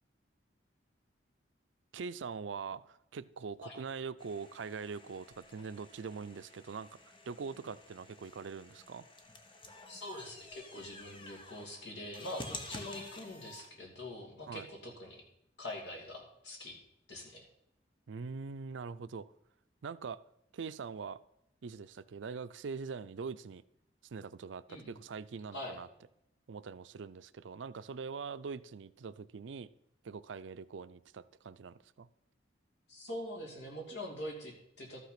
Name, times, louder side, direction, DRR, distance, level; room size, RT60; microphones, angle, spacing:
voice 1, 1.9-6.9 7.3-9.0 14.5-14.7 18.1-19.3 19.8-20.2 20.5-21.2 21.6-23.6 24.1-25.9 26.5-29.7 30.0-32.1, right 5 dB, 80° right, 16 dB, 0.5 m, -43 dB
sound 1, 4.2-13.7, left 2 dB, 25° left, 1.0 m, -51 dB
voice 2, 9.9-15.2 15.6-16.8 17.1-17.5 24.7-25.0 25.5-25.7 32.9-35.0, left 1 dB, 70° left, 0 dB, 2.8 m, -44 dB
13.0 x 5.9 x 5.8 m, 0.80 s
head